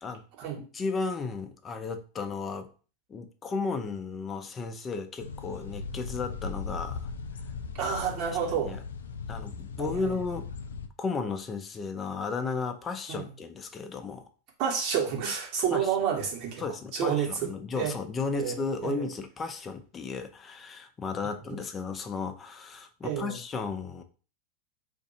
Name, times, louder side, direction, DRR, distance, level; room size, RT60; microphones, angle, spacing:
voice 1, 0.6-2.7 3.1-7.1 7.8-7.9 8.5-8.8 9.3-10.5 11.0-14.2 15.7-15.9 16.6-24.0, left 4 dB, 25° left, 7 dB, 0.6 m, -34 dB
sound 1, 5.2-10.9, left 5 dB, 85° left, 0.3 m, -38 dB
voice 2, 7.8-8.8 9.8-9.9 13.1-13.3 14.6-16.6 16.9-17.5 17.8-17.9 18.3-18.6 18.8-19.0 23.0-23.4, right 7 dB, 50° right, -1 dB, 1.3 m, -29 dB
2.6 x 2.6 x 4.1 m, 0.37 s
hypercardioid pair, 95°, 0 cm